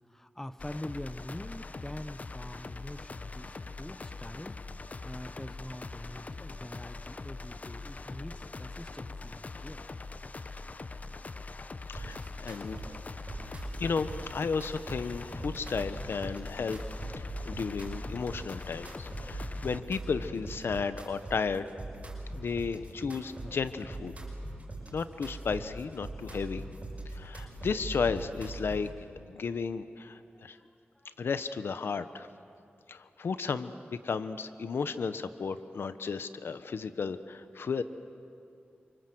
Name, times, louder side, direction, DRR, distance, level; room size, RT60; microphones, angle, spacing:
voice 1, 0.1-4.6 5.0-9.8 27.3-27.5 30.2-30.6 30.9-31.1, left 1 dB, 10° left, 13 dB, 0.9 m, -44 dB
sound 1, 0.6-19.8, left 3 dB, 40° left, 0.8 m, -43 dB
voice 2, 11.9-12.8 13.8-16.8 17.1-21.7 22.3-24.1 24.9-26.6 27.1-28.9 29.3-30.6 31.2-32.3 32.9-33.7 34.0-37.8, left 5 dB, 80° left, 12 dB, 1.0 m, -33 dB
sound 2, 11.9-28.9, right 1 dB, 35° right, 6.6 m, -41 dB
28.5 x 26.0 x 7.9 m, 2.6 s
wide cardioid pair, 90°, 4 cm